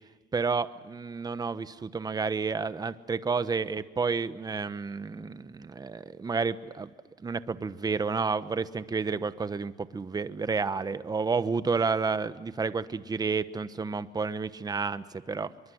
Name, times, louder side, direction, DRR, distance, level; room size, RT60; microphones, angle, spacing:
voice 1, 0.3-6.9 7.2-15.5, right 4 dB, 25° right, 13 dB, 1.1 m, -30 dB
24.5 x 23.0 x 7.9 m, 1.4 s
cardioid pair, 110°, 17 cm